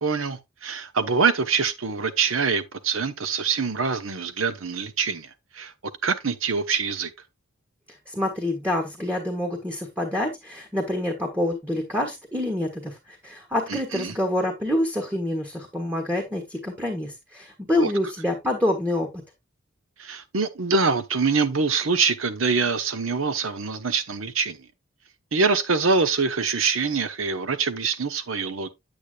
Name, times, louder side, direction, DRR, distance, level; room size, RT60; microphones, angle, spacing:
voice 1, 0.0-5.7 6.0-7.1 13.7-14.1 17.8-17.9 20.0-24.7 25.3-28.7, right 4 dB, 85° right, 1.0 m, -24 dB
voice 2, 7.9-19.2, left 1 dB, 10° right, 1.4 m, -27 dB
8.7 x 8.2 x 2.3 m
head